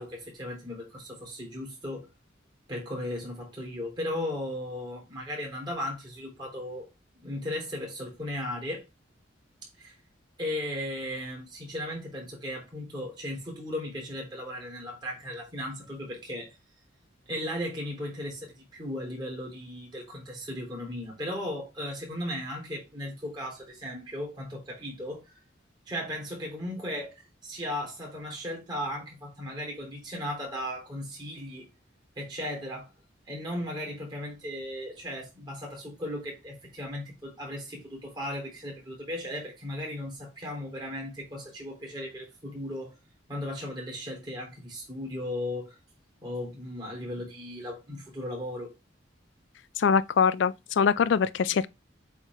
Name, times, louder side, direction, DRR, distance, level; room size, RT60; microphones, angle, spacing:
voice 1, 0.0-2.1 2.7-6.9 7.2-8.8 9.8-9.9 10.4-16.5 17.3-25.2 25.9-27.1 27.4-31.7 32.1-32.9 33.3-42.9 43.3-45.8 46.2-48.7, left 1 dB, 25° right, 3.4 m, -36 dB
voice 2, 49.8-51.7, left 6 dB, 65° left, 0.4 m, -23 dB
8.1 x 3.6 x 3.6 m
head